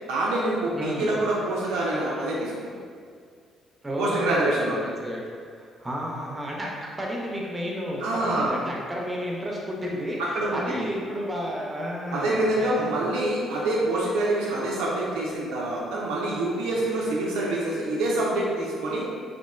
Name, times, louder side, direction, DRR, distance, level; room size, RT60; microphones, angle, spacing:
voice 1, 0.1-2.7 4.0-4.8 8.0-8.5 10.2-10.9 12.1-19.0, right 1 dB, 65° right, -5 dB, 0.3 m, -26 dB
voice 2, 0.7-1.1 3.8-5.2 5.5-12.8, equal, 15° right, -3 dB, 0.5 m, -32 dB
2.8 x 2.3 x 2.2 m, 2.2 s
figure-of-eight pair, 45°, 0 cm